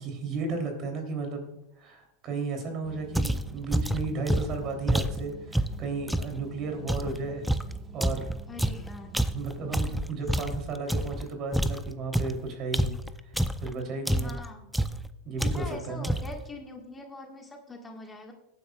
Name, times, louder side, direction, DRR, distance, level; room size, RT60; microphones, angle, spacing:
voice 1, 0.0-7.5 7.9-8.2 9.3-12.9 13.6-14.3 15.2-16.1, right 3 dB, 45° right, 3 dB, 3.1 m, -34 dB
sound 1, 2.8-9.8, right 6 dB, 20° right, 1.4 m, -48 dB
sound 2, 3.1-6.4 6.9-11.2 11.5-13.7 14.1-14.5 14.7-15.1 15.4-16.4, right 1 dB, ahead, 0.5 m, -28 dB
voice 2, 8.5-9.2 9.9-10.0 14.2-14.7 15.5-18.3, left 2 dB, 15° left, 2 dB, 1.6 m, -43 dB
18.5 x 9.6 x 2.4 m, 0.86 s
hypercardioid pair, 100°, 0 cm